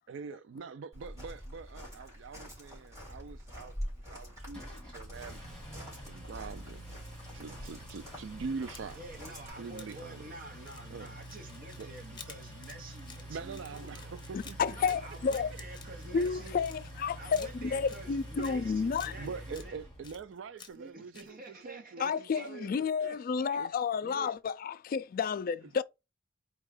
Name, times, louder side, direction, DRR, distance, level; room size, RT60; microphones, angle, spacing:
voice 1, 0.1-3.7 4.1-5.4 6.0-6.8 7.3-9.0 9.6-10.3 10.9-11.1 11.8-11.9 13.3-15.0 18.4-18.7 19.2-23.1 23.6-23.7 24.0-24.3, right 5 dB, 70° right, 0.4 m, -44 dB
Walk footsteps, 0.9-9.5, equal, 15° right, 3.0 m, -45 dB
Engine, 4.5-20.2, equal, 5° left, 1.7 m, -47 dB
sound 1, 8.6-9.2 9.8-10.0 10.6-17.0 17.3-18.6 18.9-19.7 20.0-20.9 21.1-21.3, left 6 dB, 25° left, 0.8 m, -52 dB
voice 2, 8.9-14.0 14.6-16.6 17.1-19.7 20.7-23.6, right 2 dB, 50° right, 0.9 m, -49 dB
voice 3, 14.3-15.5 16.1-19.1 22.0-25.8, left 6 dB, 50° left, 0.3 m, -31 dB
4.4 x 2.3 x 4.8 m
head